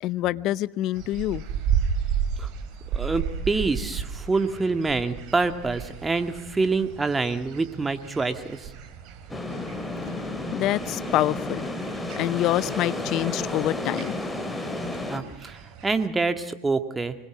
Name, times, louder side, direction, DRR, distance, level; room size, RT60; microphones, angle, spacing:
voice 1, 0.0-1.4 10.0-14.2, left 15 dB, 50° left, 0.7 m, -27 dB
sound 1, 0.9-16.1, right 7 dB, 50° right, 2.7 m, -34 dB
voice 2, 2.9-8.7 15.1-17.2, right 3 dB, 15° right, 1.9 m, -26 dB
sound 2, 9.3-15.2, left 2 dB, 10° left, 2.9 m, -32 dB
25.0 x 20.5 x 6.1 m
hypercardioid pair, 85°, 0 cm